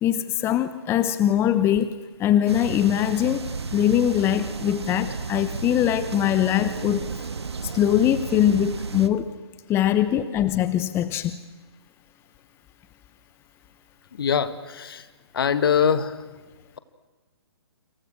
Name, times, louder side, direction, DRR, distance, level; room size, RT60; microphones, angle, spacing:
voice 1, 0.0-1.9 2.2-3.5 3.7-7.1 7.6-9.3 9.7-11.4, left 11 dB, 15° left, 12 dB, 0.9 m, -22 dB
sound 1, 2.5-9.1, right 5 dB, 75° right, 1.8 m, -33 dB
voice 2, 14.1-15.1 15.3-16.2, left 7 dB, 60° left, 12 dB, 2.0 m, -23 dB
29.0 x 27.0 x 6.3 m, 1.3 s
figure-of-eight pair, 130°, 14 cm